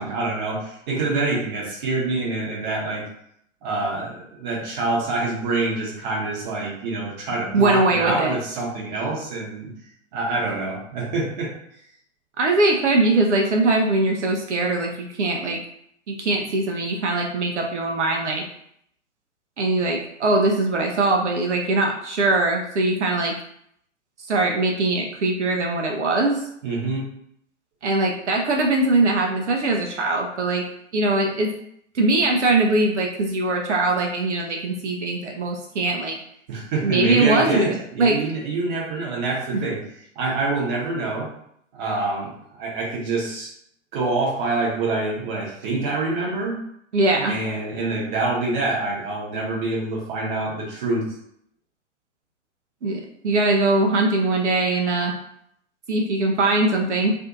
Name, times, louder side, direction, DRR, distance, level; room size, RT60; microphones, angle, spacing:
voice 1, 0.0-3.0 3.6-9.7 10.1-11.5 26.6-27.0 36.5-39.8 40.2-41.3 41.7-43.5 43.9-46.6 47.3-51.1, right 3 dB, 35° right, -3 dB, 0.8 m, -26 dB
voice 2, 7.5-8.3 12.4-15.6 16.1-18.4 19.6-23.3 24.3-26.4 27.8-30.6 30.9-31.5 31.9-36.2 36.8-38.2 39.5-39.6 46.9-47.3 52.8-55.1 55.9-57.2, right 2 dB, 60° right, 1 dB, 0.5 m, -21 dB
2.6 x 2.5 x 2.4 m, 0.70 s
figure-of-eight pair, 110°, 39 cm